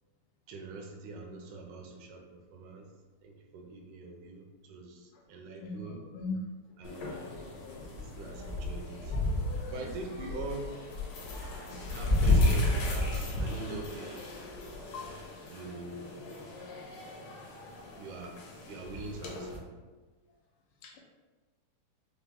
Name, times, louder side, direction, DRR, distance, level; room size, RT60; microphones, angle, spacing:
voice 1, 0.5-2.9 3.2-6.0 6.8-7.2 7.8-9.2 9.7-10.7 11.9-14.3 15.5-16.2 18.0-18.4 18.7-19.7, right 3 dB, 80° right, 0 dB, 2.0 m, -43 dB
voice 2, 5.6-6.4 7.6-7.8 14.9-15.2 15.5-15.7 17.8-17.9 20.8-21.0, left 4 dB, 90° left, -1 dB, 2.3 m, -40 dB
sound 1, 6.8-19.6, left 2 dB, 70° left, 1.7 m, -33 dB
5.9 x 2.1 x 3.5 m, 1.3 s
omnidirectional pair, 3.6 m